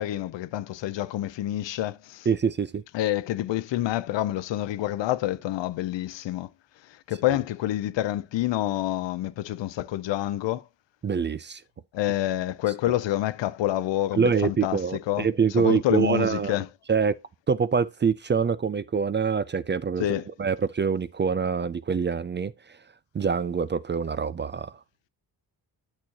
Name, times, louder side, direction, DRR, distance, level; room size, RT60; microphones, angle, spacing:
voice 1, 0.0-2.3 2.9-6.5 6.9-10.6 11.9-15.3 15.6-16.7 20.0-20.2, left 14 dB, 80° left, 0.6 m, -27 dB
voice 2, 2.3-2.8 11.0-11.6 14.2-16.6 16.9-17.1 17.5-20.1 20.4-22.5 23.1-24.7, right 6 dB, 30° right, 0.3 m, -25 dB
8.7 x 6.1 x 2.8 m
cardioid pair, 75°, 43 cm